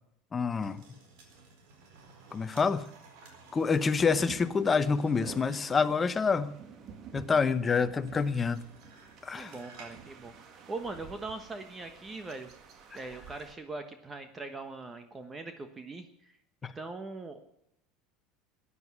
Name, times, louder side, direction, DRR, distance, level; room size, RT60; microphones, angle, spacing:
voice 1, 0.3-0.8 2.3-2.9 3.5-6.5 7.1-8.6 9.2-9.5 16.6-16.7, left 5 dB, 20° left, 0.9 m, -27 dB
sound 1, 0.6-5.8 8.1-10.1 10.4-10.5, right 4 dB, 75° right, 4.0 m, -55 dB
sound 2, 4.0-13.5, right 6 dB, 45° right, 2.2 m, -50 dB
voice 2, 9.3-12.5 12.9-16.3 16.7-17.4, right 3 dB, 20° right, 1.2 m, -41 dB
13.0 x 9.9 x 9.7 m
supercardioid pair, 125°, 0 cm